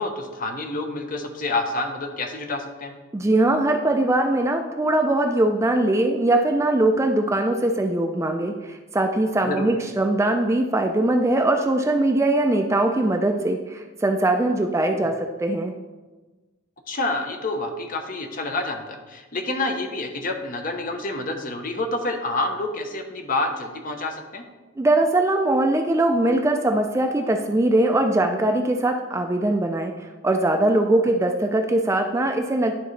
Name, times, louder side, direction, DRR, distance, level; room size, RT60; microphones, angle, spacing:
voice 1, 0.0-2.9 9.5-9.7 16.9-24.4, left 2 dB, 45° left, 4 dB, 0.8 m, -28 dB
voice 2, 3.1-15.7 24.8-32.7, right 1 dB, 15° right, 4 dB, 0.3 m, -21 dB
11.0 x 3.9 x 3.2 m, 1.2 s
head